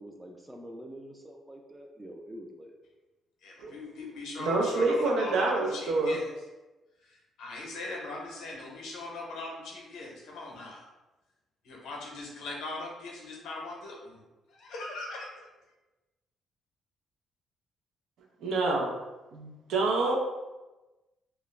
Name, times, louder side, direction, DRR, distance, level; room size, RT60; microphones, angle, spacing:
voice 1, 0.0-2.7, equal, 15° right, 2 dB, 0.4 m, -46 dB
voice 2, 3.4-6.2 7.0-10.9 11.6-14.2 14.5-15.3, left 2 dB, 85° left, -2 dB, 0.7 m, -40 dB
voice 3, 4.4-6.1 18.4-18.9 19.3-20.1, right 3 dB, 85° right, 0 dB, 0.5 m, -27 dB
2.3 x 2.0 x 3.1 m, 1.1 s
cardioid pair, 90°, 0 cm